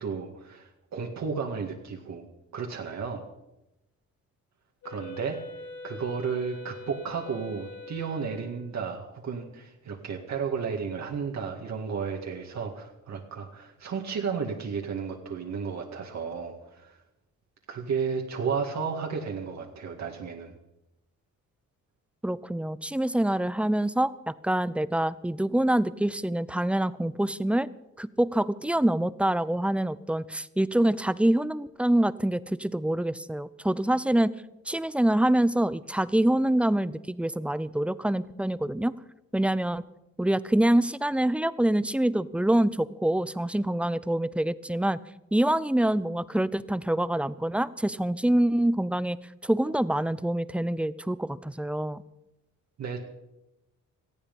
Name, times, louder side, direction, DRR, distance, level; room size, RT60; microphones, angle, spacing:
voice 1, 0.0-2.3 2.5-3.2 4.8-5.4 5.8-17.0 17.7-20.5 52.8-53.0, right 6 dB, 60° right, 1 dB, 2.1 m, -33 dB
Wind instrument woodwind instrument, 4.8-8.7, left 4 dB, 70° left, 5.1 m, -43 dB
voice 2, 22.2-27.7 28.0-34.3 34.7-38.9 39.3-39.8 40.2-45.0 45.3-49.2 49.4-52.0, right 1 dB, 5° right, 17 dB, 0.5 m, -25 dB
18.5 x 14.5 x 5.4 m, 0.91 s
cardioid pair, 115°, 31 cm